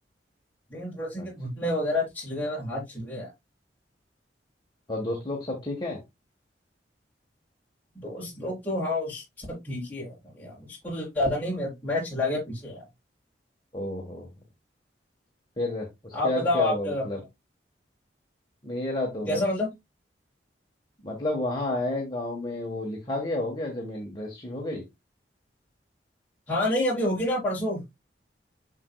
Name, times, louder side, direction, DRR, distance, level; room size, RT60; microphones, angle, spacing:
voice 1, 0.7-3.3 7.9-12.8 16.1-17.0 19.3-19.7 26.5-27.8, left 1 dB, 10° left, -5 dB, 4.1 m, -29 dB
voice 2, 4.9-6.0 13.7-14.3 15.6-17.2 18.6-19.4 21.0-24.8, left 1 dB, 25° left, -1 dB, 1.4 m, -31 dB
7.2 x 6.1 x 2.3 m, 0.20 s
head